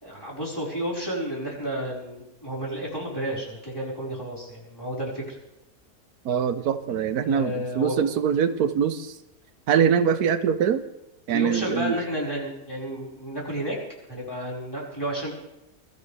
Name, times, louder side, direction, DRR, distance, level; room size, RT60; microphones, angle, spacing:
voice 1, 0.0-5.4 6.9-8.1 11.3-13.8 14.1-15.3, equal, 15° left, -5 dB, 5.0 m, -31 dB
voice 2, 6.2-9.2 9.7-10.8 11.3-12.0, right 8 dB, 85° right, 11 dB, 1.3 m, -23 dB
22.5 x 13.5 x 3.4 m, 0.94 s
omnidirectional pair, 1.6 m